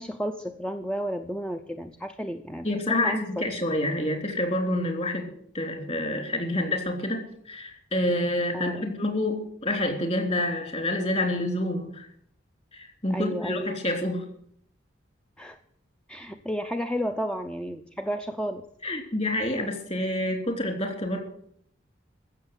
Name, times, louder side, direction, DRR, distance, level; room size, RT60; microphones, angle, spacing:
voice 1, 0.0-3.4 8.5-8.8 13.1-13.7 15.4-15.6 16.1-18.7, equal, 5° left, 6 dB, 0.6 m, -32 dB
voice 2, 2.6-12.1 12.7-14.2 18.8-21.2, left 1 dB, 35° left, 4 dB, 3.3 m, -28 dB
15.5 x 7.1 x 9.8 m, 0.65 s
head